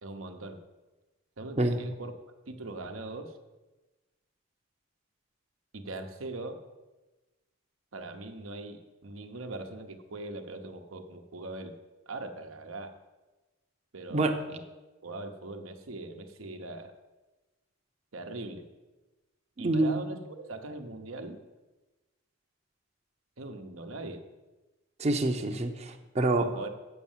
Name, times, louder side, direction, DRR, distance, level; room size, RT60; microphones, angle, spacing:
voice 1, 0.0-0.6 1.4-2.1 2.5-3.4 5.7-6.6 7.9-11.7 12.1-13.0 13.9-14.6 15.0-16.9 18.1-18.6 19.6-21.4 23.4-24.2 26.4-26.7, right 2 dB, 85° right, 6 dB, 1.0 m, -41 dB
voice 2, 19.6-20.0 25.0-26.5, right 2 dB, 35° right, 4 dB, 0.7 m, -27 dB
8.3 x 6.3 x 7.3 m, 1.1 s
head